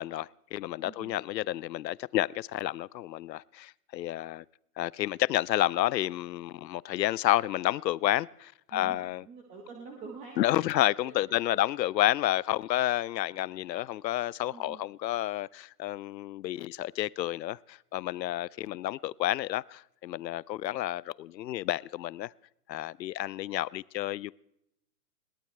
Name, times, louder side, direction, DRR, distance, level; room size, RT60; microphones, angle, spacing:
voice 1, 0.0-4.4 4.8-9.2 10.4-22.3 22.7-24.3, left 14 dB, 85° left, 0.6 m, -30 dB
voice 2, 0.8-1.2 8.7-10.7 11.0-11.6 14.5-14.9, right 4 dB, 15° right, 1.2 m, -47 dB
21.5 x 17.5 x 3.3 m
hypercardioid pair, 160°, 50 cm